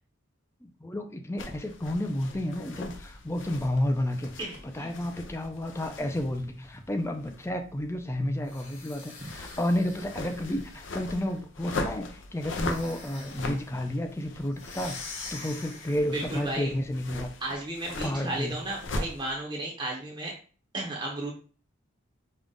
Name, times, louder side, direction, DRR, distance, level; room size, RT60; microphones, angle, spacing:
voice 1, 0.6-4.3 4.6-17.3 18.0-18.6, left 1 dB, 15° left, 5 dB, 0.5 m, -31 dB
sound 1, 1.4-19.3, left 2 dB, 65° left, 0.6 m, -40 dB
voice 2, 4.4-4.9 16.1-16.7 17.4-20.3 20.7-21.3, right 2 dB, 25° right, -2 dB, 0.8 m, -34 dB
sound 2, 8.4-11.4 12.5-13.6 14.5-16.2, left 4 dB, 90° left, 2.1 m, -45 dB
5.4 x 2.4 x 3.7 m, 0.39 s
head